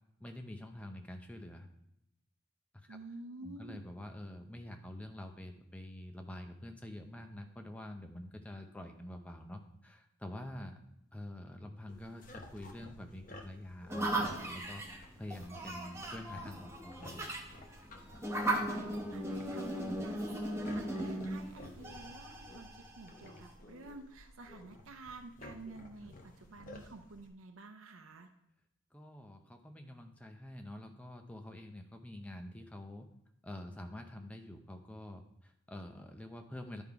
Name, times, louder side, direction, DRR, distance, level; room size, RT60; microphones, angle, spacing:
voice 1, 0.2-1.7 2.7-3.0 3.4-10.8 11.1-14.8 15.2-17.3 26.0-26.1 28.9-33.1 33.4-36.8, left 1 dB, 5° left, 4 dB, 0.5 m, -47 dB
voice 2, 2.9-3.9 18.6-28.3, right 2 dB, 85° right, 6 dB, 0.6 m, -50 dB
sound 1, 11.9-27.3, left 2 dB, 40° left, 0.8 m, -54 dB
sound 2, 13.9-23.5, right 1 dB, 15° right, 0.9 m, -38 dB
10.5 x 3.6 x 4.7 m, 0.82 s
head